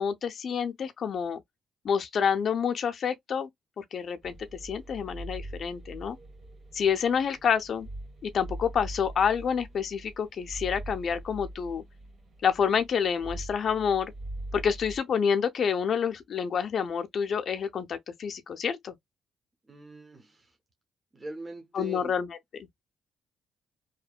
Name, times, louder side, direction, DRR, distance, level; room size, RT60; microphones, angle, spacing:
voice 1, 0.0-1.4 1.8-3.5 3.8-4.3 4.6-6.2 6.7-7.9 8.2-11.8 12.4-14.1 14.5-18.9 21.7-22.3, left 7 dB, 55° left, 0.4 m, -28 dB
sound 1, 4.2-15.0, right 1 dB, 45° right, 1.4 m, -42 dB
voice 2, 19.7-20.6 21.1-22.1, right 2 dB, 20° right, 0.7 m, -42 dB
2.8 x 2.2 x 2.3 m
cardioid pair, 90°, 0 cm